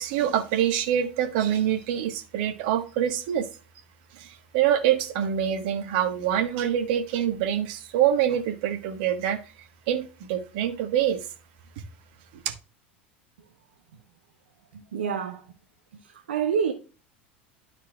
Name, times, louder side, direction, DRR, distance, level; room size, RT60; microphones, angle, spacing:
voice 1, 0.0-3.5 4.1-9.4 9.9-11.2 12.4-12.5, right 10 dB, 65° right, 1.4 m, -25 dB
voice 2, 14.7-15.4 16.0-16.7, right 7 dB, 85° right, 0.9 m, -28 dB
12.5 x 4.4 x 2.4 m
hypercardioid pair, 85°, 6 cm